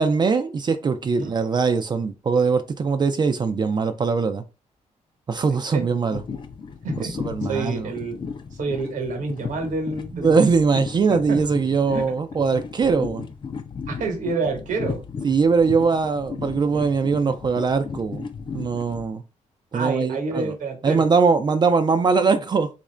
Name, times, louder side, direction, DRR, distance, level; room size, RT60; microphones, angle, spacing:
voice 1, 0.0-4.4 5.3-6.2 7.0-7.9 10.1-13.2 15.2-18.3 18.5-19.2 19.7-20.5 20.8-22.7, right 5 dB, 35° right, 0.4 m, -21 dB
sound 1, 6.1-19.0, left 5 dB, 35° left, 0.4 m, -35 dB
voice 2, 7.4-8.2 8.6-10.4 11.1-11.4 11.9-12.1 13.9-15.0 19.7-21.1, right 3 dB, 75° right, 1.1 m, -28 dB
3.5 x 2.5 x 3.1 m
cardioid pair, 125°, 13 cm